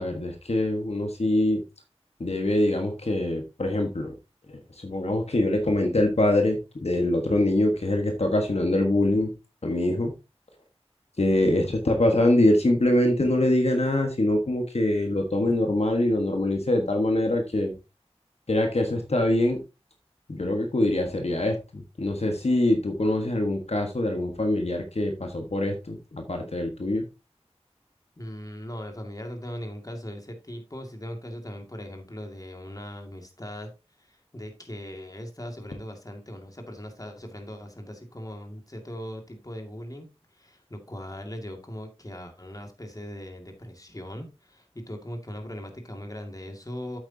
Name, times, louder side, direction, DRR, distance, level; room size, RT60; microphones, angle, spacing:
voice 1, 0.0-1.6 2.2-4.1 4.5-9.3 9.6-10.1 11.2-17.7 18.5-19.6 20.3-27.0, left 1 dB, 70° left, 4 dB, 1.4 m, -24 dB
voice 2, 28.2-33.7 34.0-47.0, equal, 30° left, 4 dB, 2.2 m, -39 dB
8.4 x 8.0 x 2.8 m, 0.27 s
wide cardioid pair, 55°, 11 cm